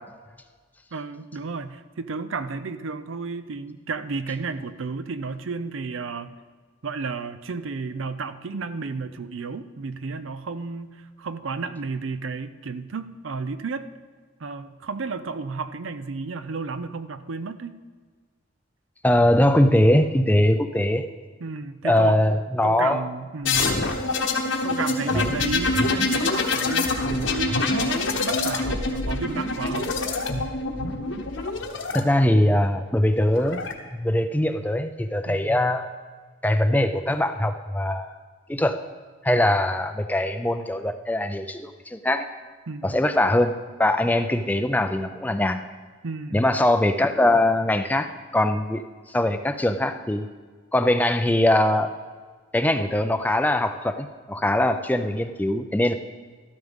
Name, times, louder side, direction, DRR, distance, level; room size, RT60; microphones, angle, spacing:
voice 1, 0.9-6.3 6.8-13.9 14.4-17.8 21.4-22.2 22.6-23.7 24.6-29.9 35.3-35.6 42.7-43.0 46.0-46.5, right 4 dB, 75° right, 12 dB, 0.6 m, -32 dB
voice 2, 19.0-21.0 21.8-23.0 25.1-25.3 31.9-33.6 33.9-35.9 36.4-38.1 38.5-38.8 39.2-42.3 42.8-45.6 46.3-48.8 49.1-50.3 50.7-51.9 52.5-55.9, left 1 dB, 10° left, 9 dB, 0.4 m, -22 dB
sound 1, 23.4-32.0 33.1-33.7, left 3 dB, 70° left, 1.1 m, -25 dB
13.0 x 13.0 x 3.6 m, 1.5 s
head